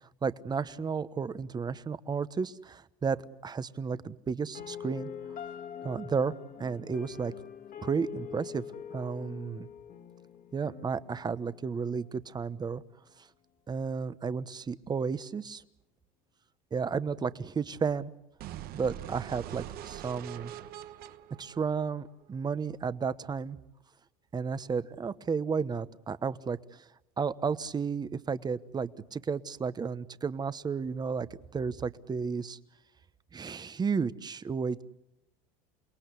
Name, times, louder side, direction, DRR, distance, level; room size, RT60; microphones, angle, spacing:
voice 1, 0.2-5.1 5.8-6.3 6.6-7.3 7.8-8.6 8.9-9.7 10.5-12.8 13.2-13.3 13.7-15.6 16.7-18.1 18.7-20.5 21.4-23.6 24.3-26.8 27.2-32.6 33.3-34.8, right 5 dB, 25° right, 15 dB, 1.1 m, -33 dB
sound 1, 4.5-12.5, left 8 dB, 50° left, 2.1 m, -44 dB
sound 2, 18.4-22.4, right 12 dB, 55° right, 1.2 m, -43 dB
29.0 x 19.0 x 8.3 m, 0.92 s
supercardioid pair, 105°, 18 cm